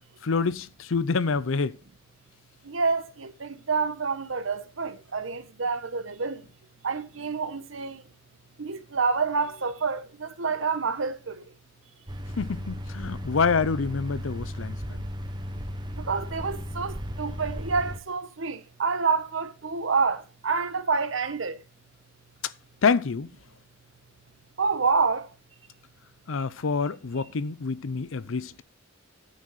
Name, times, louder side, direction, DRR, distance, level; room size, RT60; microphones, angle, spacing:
voice 1, 0.2-1.8 12.4-15.0 22.4-22.5 22.8-23.3 26.3-28.6, left 5 dB, 80° left, 0.6 m, -27 dB
voice 2, 2.7-6.4 6.8-8.0 8.6-11.4 16.1-21.5 24.6-25.3, right 4 dB, 75° right, 1.0 m, -28 dB
sound 1, 12.1-18.0, equal, 25° right, 1.0 m, -35 dB
9.7 x 9.0 x 4.1 m
head